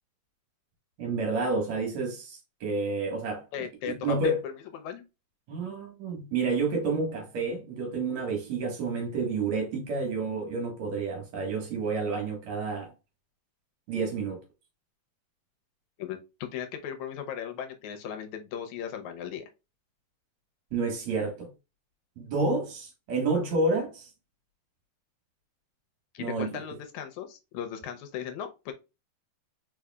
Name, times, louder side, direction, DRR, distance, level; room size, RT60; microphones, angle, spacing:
voice 1, 1.0-3.4 3.8-4.4 5.5-12.9 13.9-14.4 20.7-21.5 22.2-24.1 26.2-26.6, right 3 dB, 65° right, 2.8 m, -29 dB
voice 2, 3.5-5.0 16.0-19.4 26.1-28.7, left 9 dB, 75° left, 2.0 m, -37 dB
4.8 x 4.8 x 2.3 m
omnidirectional pair, 3.5 m